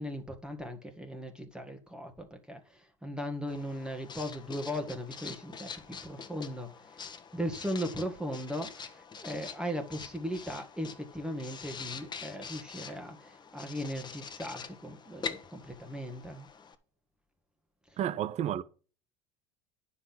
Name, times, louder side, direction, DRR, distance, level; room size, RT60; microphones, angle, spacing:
voice 1, 0.0-7.1 7.3-16.5 17.9-18.0, equal, 5° right, 1.8 m, -38 dB
Writing, 3.5-16.7, left 6 dB, 30° left, 1.4 m, -45 dB
voice 2, 18.0-18.6, right 10 dB, 45° right, 0.9 m, -31 dB
9.8 x 5.8 x 5.9 m
hypercardioid pair, 80°, 15 cm